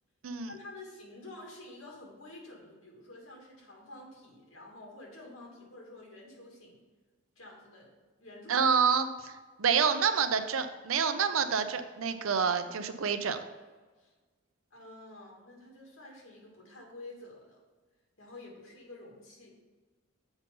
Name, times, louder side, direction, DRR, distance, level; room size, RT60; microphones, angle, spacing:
voice 1, 0.5-6.8 7.4-8.7 14.0-14.1 14.7-17.6 18.2-19.6, left 2 dB, 85° left, -1 dB, 2.4 m, -49 dB
voice 2, 8.5-13.4, right 6 dB, 85° right, 9 dB, 0.6 m, -28 dB
7.2 x 5.4 x 5.4 m, 1.3 s
head